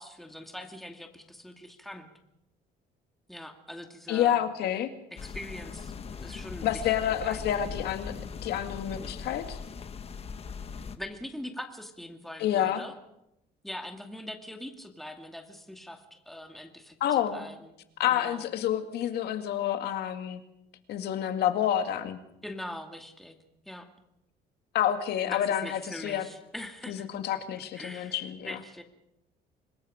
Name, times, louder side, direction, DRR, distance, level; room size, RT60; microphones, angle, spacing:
voice 1, 0.0-2.1 3.3-4.4 5.1-7.7 11.0-12.9 13.6-17.7 18.1-18.5 22.4-23.4 23.7-23.9 25.2-27.1 27.3-27.4 27.7-28.8, left 1 dB, ahead, 4 dB, 2.4 m, -42 dB
voice 2, 4.1-4.9 6.6-8.1 8.4-9.6 12.4-12.8 17.0-17.4 18.0-20.4 20.9-22.2 24.7-26.3 26.9-28.6, left 10 dB, 75° left, 7 dB, 2.1 m, -28 dB
sound 1, 5.2-11.0, left 6 dB, 35° left, 1.3 m, -40 dB
26.0 x 20.5 x 5.1 m, 0.84 s
cardioid pair, 110°, 17 cm